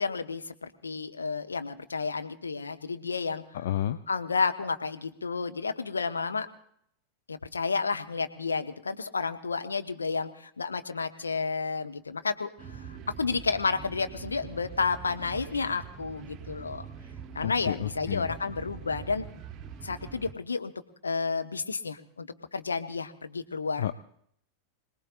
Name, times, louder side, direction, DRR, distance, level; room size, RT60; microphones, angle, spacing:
voice 1, 0.0-3.4 4.1-6.5 7.3-16.8 17.3-19.3 19.8-20.7 21.0-23.9, left 4 dB, 75° left, 7 dB, 1.0 m, -31 dB
voice 2, 3.5-4.0 17.4-18.3 23.8-23.9, left 11 dB, 55° left, 11 dB, 0.5 m, -31 dB
sound 1, 12.6-20.3, right 7 dB, 30° right, 1.0 m, -44 dB
26.0 x 19.0 x 2.5 m, 0.67 s
figure-of-eight pair, 90°, 0 cm